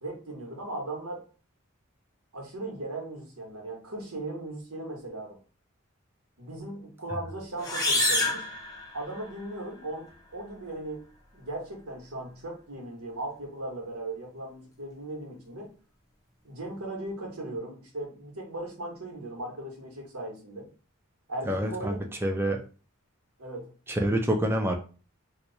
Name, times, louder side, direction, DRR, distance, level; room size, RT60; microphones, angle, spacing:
voice 1, 0.0-1.2 2.3-5.4 6.4-8.5 8.9-11.0 11.3-15.7 16.4-20.7 21.3-22.1 23.4-23.7, right 2 dB, 85° right, 0 dB, 1.2 m, -38 dB
sound 1, 7.6-9.4, left 2 dB, 15° left, 0.7 m, -28 dB
voice 2, 21.4-22.6 23.9-24.8, right 1 dB, 10° right, 3 dB, 0.4 m, -27 dB
2.9 x 2.3 x 3.9 m, 0.37 s
head